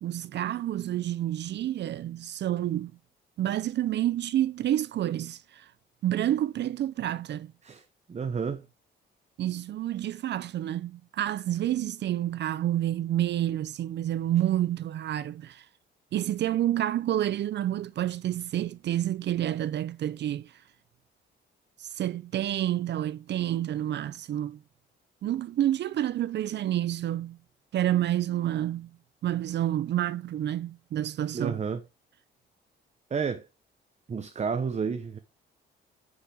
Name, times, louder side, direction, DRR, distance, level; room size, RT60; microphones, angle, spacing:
voice 1, 0.0-2.9 3.4-5.7 6.0-7.5 9.4-15.7 16.1-20.6 21.8-24.6 25.2-27.4 27.7-29.0 29.2-31.6, right 12 dB, 60° right, 0.5 m, -29 dB
voice 2, 8.1-8.6 31.3-31.8 33.1-33.5 34.1-35.2, right 5 dB, 35° right, 1.0 m, -30 dB
9.5 x 6.6 x 3.5 m
cardioid pair, 90°, 20 cm